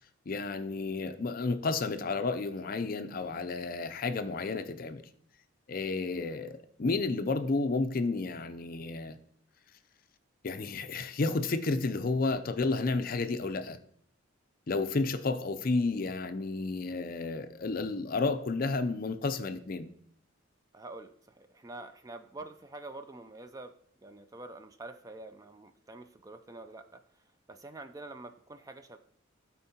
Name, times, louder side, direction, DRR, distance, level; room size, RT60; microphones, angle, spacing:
voice 1, 0.3-5.0 5.7-9.2 10.4-13.8 14.7-19.9, left 3 dB, 45° left, 9 dB, 0.4 m, -31 dB
voice 2, 20.7-23.7 24.0-29.0, right 2 dB, 15° right, 8 dB, 0.3 m, -47 dB
12.0 x 4.4 x 2.8 m, 0.65 s
head